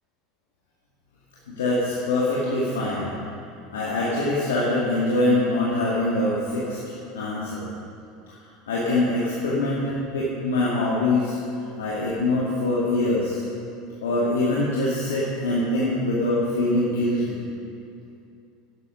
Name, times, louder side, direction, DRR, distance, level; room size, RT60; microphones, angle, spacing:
voice 1, 1.5-3.1 3.7-6.8 7.1-7.7 8.7-9.8 10.1-11.4 11.8-13.4 14.0-17.4, left 2 dB, 85° left, -7 dB, 2.0 m, -23 dB
11.5 x 8.3 x 5.7 m, 2.6 s
hypercardioid pair, 90°, 0 cm